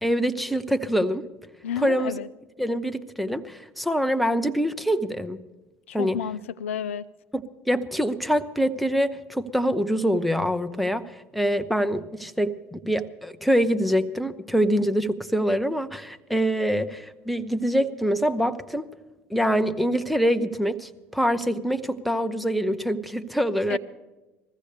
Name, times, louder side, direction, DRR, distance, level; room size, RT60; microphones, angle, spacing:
voice 1, 0.0-1.3 1.8-2.1 2.6-5.4 5.9-6.2 7.3-18.9 19.3-23.8, equal, ahead, 10 dB, 0.8 m, -25 dB
voice 2, 1.6-2.3 5.9-7.1 23.7-23.8, left 9 dB, 75° left, 14 dB, 0.4 m, -31 dB
21.0 x 15.0 x 3.4 m, 1.1 s
figure-of-eight pair, 65°, 7 cm